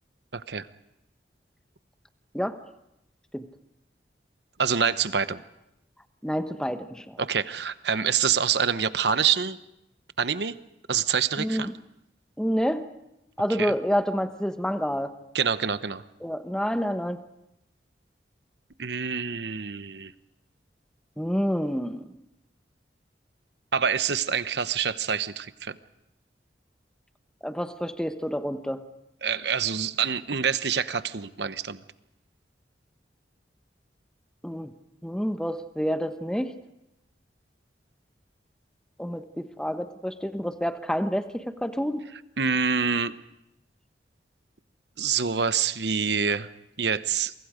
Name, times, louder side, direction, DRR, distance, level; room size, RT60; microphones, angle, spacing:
voice 1, 0.3-0.7 4.6-5.4 7.2-9.6 10.2-10.5 10.9-11.7 13.6-13.7 15.3-16.0 18.8-20.1 23.7-25.8 29.2-31.8 42.4-43.1 45.0-46.5 46.8-47.3, right 6 dB, 70° right, 13 dB, 0.9 m, -26 dB
voice 2, 6.2-7.2 11.4-11.7 12.4-12.8 13.4-15.1 16.2-17.2 21.2-22.2 27.4-28.8 34.4-34.7 35.0-36.5 39.0-42.0, equal, 5° left, 8 dB, 1.1 m, -28 dB
27.5 x 24.5 x 5.1 m, 0.86 s
head